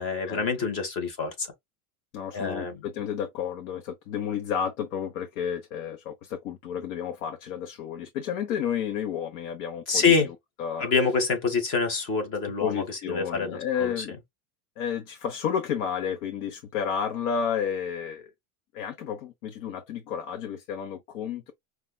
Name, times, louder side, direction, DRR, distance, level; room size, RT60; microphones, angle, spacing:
voice 1, 0.0-1.5 2.3-2.8 9.9-10.3 10.8-14.0, left 5 dB, 30° left, 1.1 m, -26 dB
voice 2, 2.1-10.9 12.4-14.1 14.8-18.3 18.7-21.5, left 8 dB, 70° left, 0.9 m, -31 dB
5.3 x 2.3 x 2.2 m
supercardioid pair, 180°, 43 cm